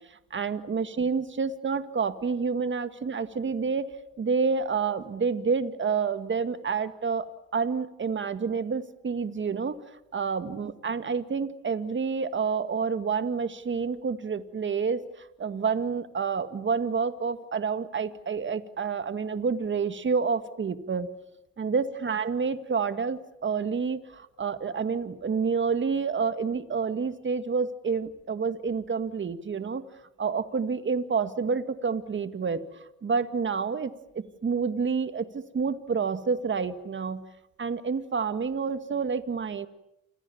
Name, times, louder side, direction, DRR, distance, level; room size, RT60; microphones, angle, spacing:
voice 1, 0.1-3.9 4.2-9.8 10.1-21.1 21.6-29.8 30.2-32.6 33.0-37.2 37.6-39.7, right 5 dB, 40° right, 10 dB, 2.0 m, -29 dB
29.0 x 26.5 x 7.3 m, 0.84 s
cardioid pair, 90°, 30 cm